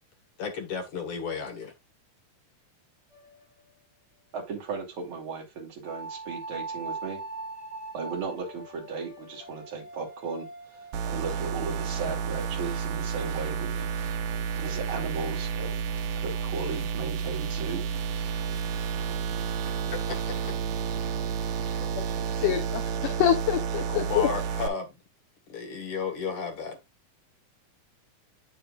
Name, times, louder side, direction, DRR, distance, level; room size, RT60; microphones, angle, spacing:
voice 1, 0.4-1.7 19.9-20.6 23.8-24.9 25.5-26.8, left 5 dB, 50° left, 1.9 m, -33 dB
sound 1, 3.1-3.8 5.8-11.0, right 3 dB, 10° left, 4.5 m, -41 dB
voice 2, 4.3-7.2 7.9-10.5 10.7-13.9 14.6-15.7 16.2-17.8, right 5 dB, 40° right, 2.9 m, -36 dB
sound 2, 10.9-24.7, right 7 dB, 80° right, 2.6 m, -31 dB
voice 3, 22.4-24.3, left 10 dB, 75° left, 2.3 m, -26 dB
8.7 x 7.3 x 2.4 m
omnidirectional pair, 4.0 m